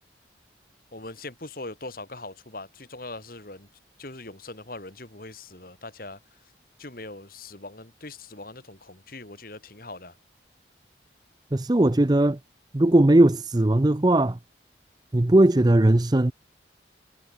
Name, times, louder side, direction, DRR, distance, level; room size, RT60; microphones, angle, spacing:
voice 1, 0.9-3.7 4.0-6.4 6.8-10.2, left 2 dB, 50° left, 2.9 m, -41 dB
voice 2, 11.5-12.4 12.7-14.4 15.1-16.3, right 1 dB, 20° right, 0.6 m, -19 dB
head